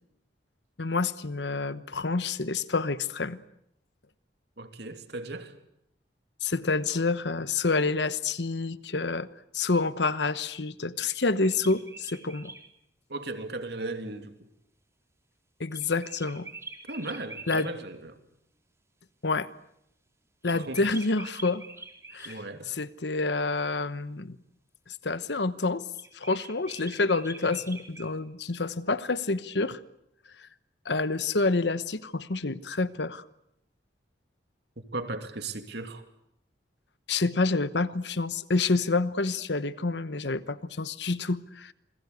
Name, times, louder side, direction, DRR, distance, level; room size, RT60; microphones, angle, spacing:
voice 1, 0.8-3.4 6.4-9.3 9.5-12.5 15.6-16.5 17.5-17.7 19.2-19.5 20.4-21.7 22.1-22.4 22.7-24.4 24.9-25.9 26.1-29.8 30.4-30.5 30.8-33.2 37.1-41.7, left 3 dB, 70° left, 1.1 m, -28 dB
voice 2, 4.6-5.5 13.1-14.3 16.9-18.1 20.5-20.8 22.2-22.8 34.8-36.0, right 2 dB, 65° right, 2.8 m, -36 dB
sound 1, 11.1-12.6 15.7-17.7 20.4-22.4 25.9-28.1, right 3 dB, 15° right, 3.8 m, -44 dB
28.0 x 21.5 x 8.3 m
head